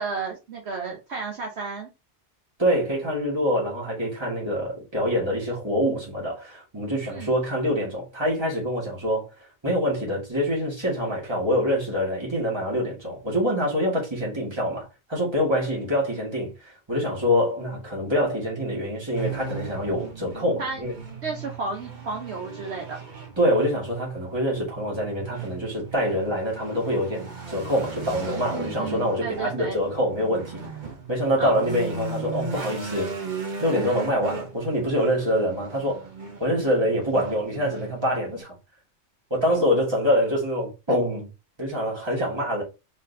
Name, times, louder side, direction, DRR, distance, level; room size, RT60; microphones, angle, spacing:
voice 1, 0.0-1.9 7.1-7.3 20.6-20.8 21.2-23.0 28.5-29.8 31.4-31.6, right 4 dB, 65° right, 1.2 m, -32 dB
voice 2, 2.6-9.3 9.6-16.5 16.9-20.9 23.4-30.6 31.1-33.1 33.6-36.1 36.4-38.5 39.3-41.3 41.6-42.6, equal, 20° right, 2.1 m, -25 dB
sound 1, 19.1-38.4, right 4 dB, 40° right, 1.0 m, -37 dB
4.2 x 3.8 x 2.7 m
omnidirectional pair, 1.2 m